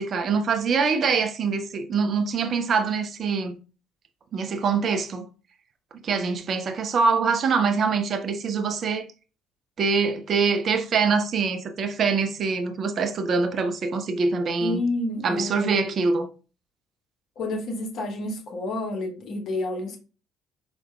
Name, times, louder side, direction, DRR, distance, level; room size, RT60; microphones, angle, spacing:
voice 1, 0.0-3.6 4.3-5.3 5.9-9.1 9.8-14.8 15.2-16.3, right 5 dB, 40° right, 0.3 m, -24 dB
voice 2, 14.6-15.9 17.4-20.0, left 2 dB, 50° left, 0.7 m, -29 dB
4.4 x 2.1 x 2.2 m
figure-of-eight pair, 50°, 0 cm